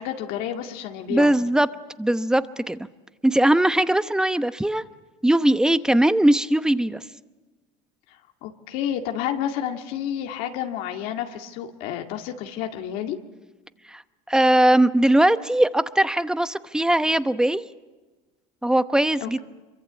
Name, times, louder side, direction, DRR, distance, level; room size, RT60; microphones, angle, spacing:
voice 1, 0.0-1.3 8.4-13.2 19.2-19.4, left 10 dB, 75° left, 4 dB, 2.1 m, -30 dB
voice 2, 1.1-1.7 2.0-2.8 3.2-4.8 5.2-7.0 13.9-14.0 14.3-17.7 18.6-19.4, right 1 dB, 5° right, 13 dB, 0.9 m, -20 dB
26.5 x 23.5 x 8.2 m, 1.3 s
supercardioid pair, 120°, 15 cm